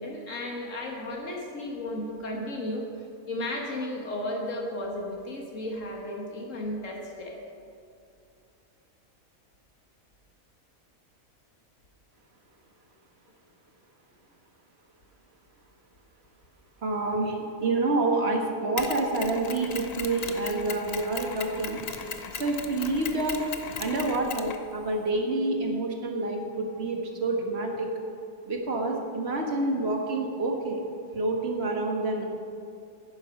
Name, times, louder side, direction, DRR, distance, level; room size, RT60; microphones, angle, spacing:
voice 1, 0.0-2.8 3.3-7.4, left 1 dB, 65° left, 0 dB, 1.7 m, -34 dB
voice 2, 16.8-21.8 22.3-23.4 23.8-27.9 28.4-30.8 31.1-32.2, right 2 dB, 50° right, 2 dB, 1.6 m, -28 dB
Mechanisms, 18.8-25.1, left 5 dB, 50° left, 0.5 m, -38 dB
9.7 x 9.7 x 5.8 m, 2.5 s
omnidirectional pair, 1.5 m